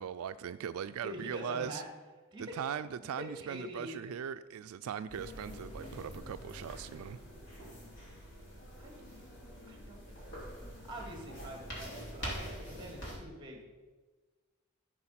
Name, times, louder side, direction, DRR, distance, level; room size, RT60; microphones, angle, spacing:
voice 1, 0.0-1.8 2.4-7.2, right 8 dB, 80° right, 12 dB, 0.3 m, -39 dB
voice 2, 1.0-1.9 2.3-2.6 3.0-4.1 8.8-8.9 9.7-10.3 10.7-13.7, equal, 20° right, 1 dB, 2.0 m, -45 dB
sound 1, 5.1-13.2, equal, 50° left, 3.1 m, -45 dB
14.0 x 4.8 x 5.7 m, 1.3 s
head